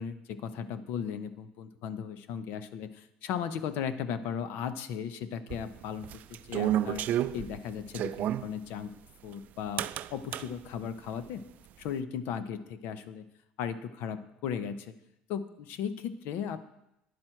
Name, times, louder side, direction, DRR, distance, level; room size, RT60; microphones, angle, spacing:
voice 1, 0.0-7.1 7.3-8.9 9.2-11.4 11.8-13.2 13.6-14.9 15.3-16.7, left 8 dB, 75° left, 11 dB, 0.9 m, -36 dB
sound 1, 5.5-8.5 9.8-10.5, right 12 dB, 55° right, 0.4 m, -30 dB
11.0 x 10.5 x 4.5 m, 0.85 s
cardioid pair, 130°, 3 cm